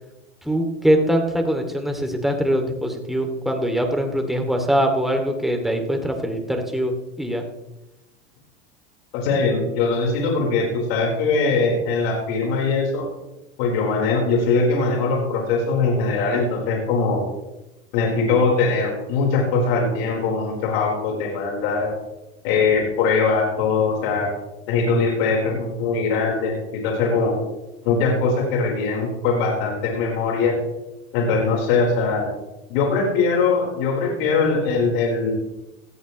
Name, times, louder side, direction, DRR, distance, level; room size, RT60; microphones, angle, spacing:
voice 1, 0.4-7.4, equal, ahead, 4 dB, 2.5 m, -22 dB
voice 2, 9.1-13.1 13.6-17.2 17.9-21.9 22.4-24.3 24.7-27.3 27.8-30.6 31.1-32.2 32.7-35.3, left 4 dB, 70° left, -1 dB, 4.4 m, -21 dB
18.5 x 14.0 x 3.2 m, 0.98 s
supercardioid pair, 100°, 31 cm